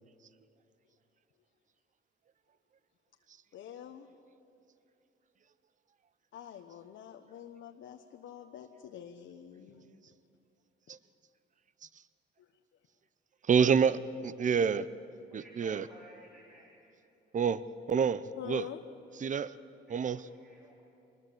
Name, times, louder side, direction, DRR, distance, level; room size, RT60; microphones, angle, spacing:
voice 1, 3.5-4.1 6.3-10.0 12.4-12.5 18.3-18.8, left 9 dB, 75° left, 4 dB, 1.1 m, -46 dB
voice 2, 13.5-14.9 15.3-15.9 17.3-17.6 17.9-18.6 19.2-19.5 19.9-20.2, right 6 dB, 40° right, 16 dB, 0.7 m, -27 dB
voice 3, 15.3-16.8 19.9-20.8, equal, ahead, -5 dB, 3.6 m, -56 dB
25.0 x 20.5 x 7.9 m, 2.8 s
cardioid pair, 90°, 20 cm